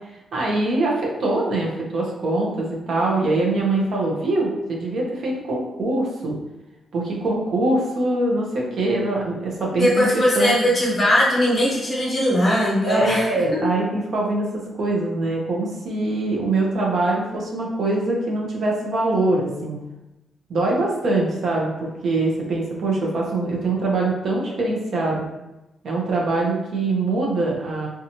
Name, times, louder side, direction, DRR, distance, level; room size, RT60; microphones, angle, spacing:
voice 1, 0.3-6.3 6.9-10.1 10.3-10.5 12.8-19.8 20.5-25.3 25.8-27.9, right 2 dB, 65° right, -2 dB, 0.6 m, -23 dB
voice 2, 9.7-13.3 13.5-13.6, equal, 30° left, -5 dB, 1.0 m, -19 dB
2.7 x 2.3 x 2.7 m, 0.98 s
cardioid pair, 115°, 0 cm